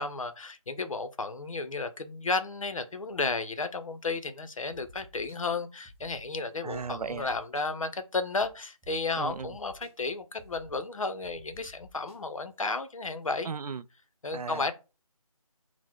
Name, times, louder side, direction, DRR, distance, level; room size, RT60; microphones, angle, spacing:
voice 1, 0.0-13.5 14.2-14.7, left 3 dB, 60° left, 0.7 m, -33 dB
sound 1, 4.7-5.4 5.8-6.2 6.7-7.6 8.4-8.5 8.8-8.9 9.2-9.9 10.4-10.8 11.2-12.1, left 1 dB, ahead, 1.0 m, -52 dB
voice 2, 6.6-7.3 9.2-9.5 13.5-13.8 14.3-14.7, right 5 dB, 80° right, 0.4 m, -36 dB
4.1 x 2.1 x 4.4 m
figure-of-eight pair, 170°, 19 cm